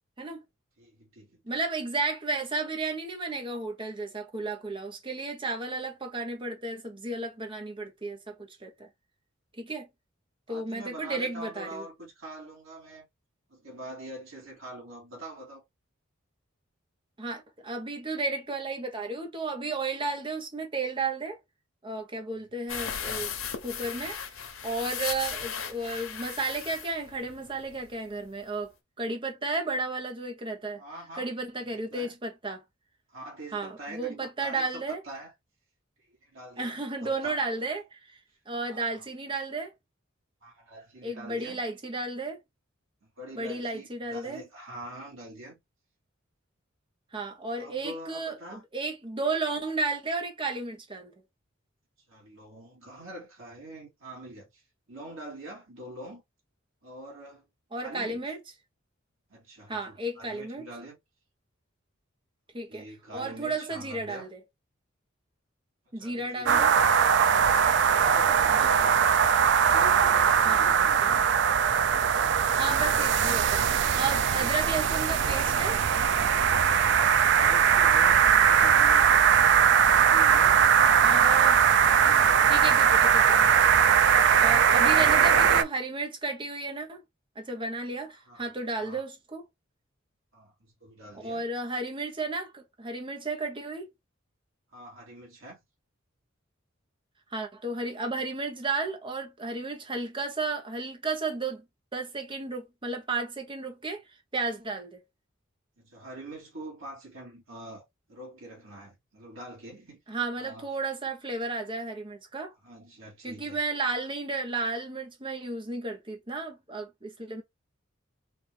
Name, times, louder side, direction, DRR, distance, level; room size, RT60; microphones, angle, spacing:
voice 1, 0.8-1.4 10.5-13.1 13.5-15.6 30.8-31.3 31.6-32.2 33.1-35.3 36.2-37.4 38.6-39.0 40.4-41.6 43.0-45.6 47.6-48.6 52.1-54.6 54.9-56.2 56.8-57.5 57.8-58.3 59.3-61.0 62.7-64.3 65.9-67.0 67.8-69.1 69.7-71.3 77.2-79.3 79.8-81.5 81.8-82.6 84.4-85.7 88.2-88.5 88.8-89.0 90.3-91.5 94.7-95.6 105.8-110.7 112.6-113.6, right 1 dB, 85° right, 2.2 m, -44 dB
voice 2, 1.4-8.9 9.6-9.9 10.5-11.8 17.2-21.4 21.8-23.3 23.6-24.2 24.6-28.7 29.0-30.8 31.2-32.6 33.5-35.0 36.6-38.2 38.5-39.7 41.0-42.4 43.4-44.4 47.1-51.1 57.7-58.4 59.7-60.7 62.5-62.9 63.1-64.4 65.9-66.7 68.5-68.7 70.4-70.7 71.0-71.1 72.6-75.8 81.0-81.6 82.5-83.5 84.4-87.0 87.4-89.4 91.2-93.9 97.3-101.6 101.9-104.0 104.3-105.0 110.1-112.5 113.2-117.4, right 3 dB, 25° right, 0.9 m, -33 dB
sound 1, 22.7-28.0 28.3-28.4 28.7-28.8, left 7 dB, 90° left, 1.0 m, -37 dB
sound 2, 66.5-85.6, right 7 dB, 60° right, 0.4 m, -21 dB
4.3 x 2.6 x 3.4 m
head